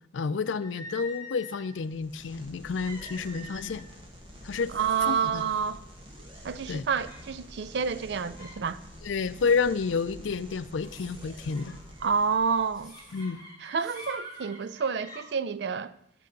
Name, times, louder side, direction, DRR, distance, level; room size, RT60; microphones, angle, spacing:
voice 1, 0.1-3.9 4.4-4.7 5.1-5.4 6.7-6.8 9.0-11.8 13.1-13.4, left 5 dB, 90° left, 0.5 m, -30 dB
sound 1, 0.6-1.8 2.8-4.0 4.3-4.5 5.2-5.3 5.8-6.2 7.0-7.3 7.9-8.6 8.9-9.2 10.7-10.9 11.5-15.2, left 1 dB, 25° left, 4.4 m, -46 dB
sound 2, 1.8-13.2, equal, 30° right, 1.5 m, -48 dB
sound 3, 4.5-15.0, left 1 dB, 5° right, 3.0 m, -58 dB
voice 2, 4.7-5.8 6.4-8.8 12.0-12.9 13.6-15.9, right 6 dB, 65° right, 0.4 m, -29 dB
9.2 x 7.6 x 5.3 m
head